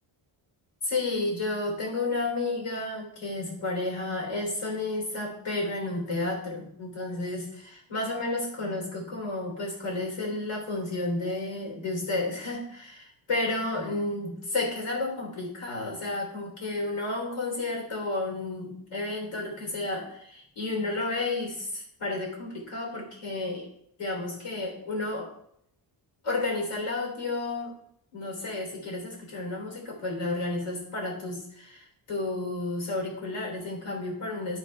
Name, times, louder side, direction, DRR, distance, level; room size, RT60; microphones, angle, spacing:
voice 1, 0.8-23.7 24.0-25.3 26.2-27.7 28.1-34.6, left 2 dB, 80° left, 0 dB, 3.7 m, -32 dB
12.5 x 5.0 x 4.5 m, 0.71 s
cardioid pair, 95°, 49 cm